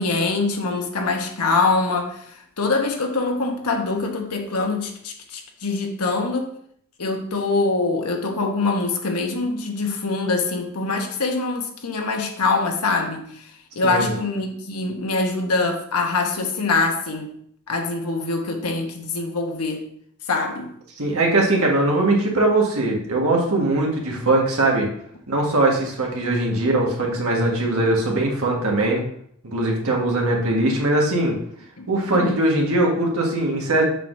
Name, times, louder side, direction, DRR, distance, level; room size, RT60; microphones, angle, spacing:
voice 1, 0.0-2.2 2.6-6.5 7.0-13.2 13.7-17.3 17.7-19.8 20.3-20.7 31.8-31.9 32.1-32.4, left 3 dB, 90° left, 3 dB, 1.1 m, -24 dB
voice 2, 13.8-14.1 21.0-24.9 25.3-29.0 29.4-31.3 31.9-33.9, right 2 dB, 70° right, -1 dB, 1.6 m, -21 dB
6.8 x 5.8 x 2.6 m, 0.66 s
head